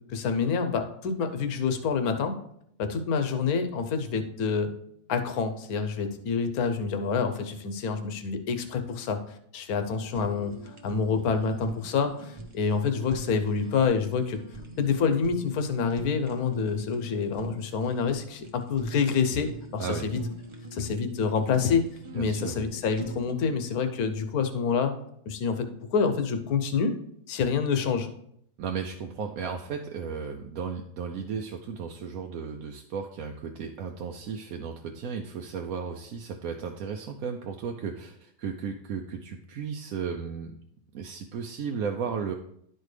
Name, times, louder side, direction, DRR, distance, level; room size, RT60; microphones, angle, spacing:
voice 1, 0.1-2.4 2.8-4.7 5.1-14.4 14.8-20.2 20.7-21.8 22.1-24.9 25.3-26.9 27.3-28.1, left 5 dB, 85° left, 8 dB, 1.3 m, -27 dB
Fire, 10.0-23.3, right 1 dB, 25° right, 0.7 m, -43 dB
voice 2, 22.2-22.6 28.6-40.5 40.9-42.3, right 6 dB, 75° right, 3 dB, 1.0 m, -34 dB
11.5 x 4.5 x 3.2 m, 0.71 s
omnidirectional pair, 1.6 m